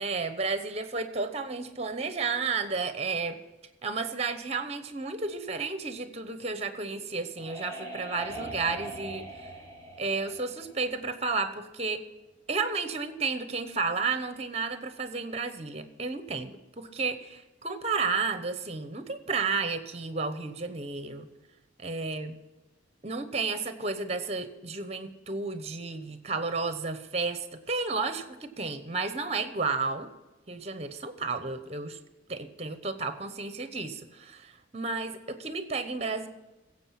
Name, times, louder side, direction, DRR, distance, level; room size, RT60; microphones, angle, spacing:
voice 1, 0.0-3.4 3.8-9.3 10.0-12.0 12.5-21.3 21.8-22.4 23.0-30.1 30.5-32.0 32.3-36.3, right 4 dB, 30° right, 10 dB, 0.9 m, -32 dB
sound 1, 6.8-11.4, right 2 dB, 15° left, 2.3 m, -42 dB
16.0 x 7.8 x 5.9 m, 1.1 s
head